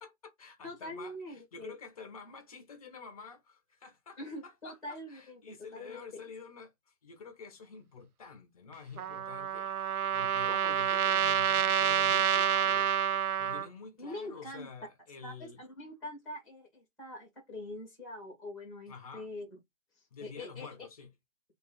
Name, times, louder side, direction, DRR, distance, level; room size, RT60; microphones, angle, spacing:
voice 1, 0.0-6.7 7.0-12.9 13.4-15.6 18.9-19.3 20.1-21.1, left 5 dB, 25° left, 1.0 m, -49 dB
voice 2, 0.6-1.7 4.2-5.4 5.7-6.0 14.0-14.7 15.2-19.6 20.2-20.9, left 1 dB, ahead, 1.3 m, -44 dB
Trumpet, 9.0-13.7, right 9 dB, 85° right, 0.6 m, -28 dB
3.2 x 3.0 x 4.6 m
figure-of-eight pair, 155°, 43 cm